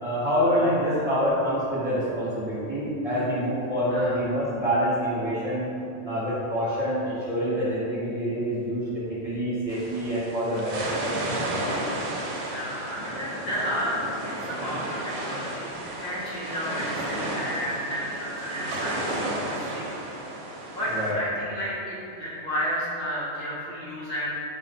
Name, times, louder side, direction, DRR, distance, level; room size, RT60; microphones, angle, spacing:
voice 1, 0.0-5.7 6.0-11.9 20.9-21.2, equal, 30° right, -11 dB, 1.1 m, -27 dB
sound 1, 9.7-21.1, right 1 dB, 65° right, 0.8 m, -33 dB
voice 2, 12.4-15.7 16.0-20.1 20.7-24.3, equal, 60° left, -8 dB, 1.0 m, -32 dB
4.4 x 2.1 x 4.1 m, 2.7 s
omnidirectional pair, 1.3 m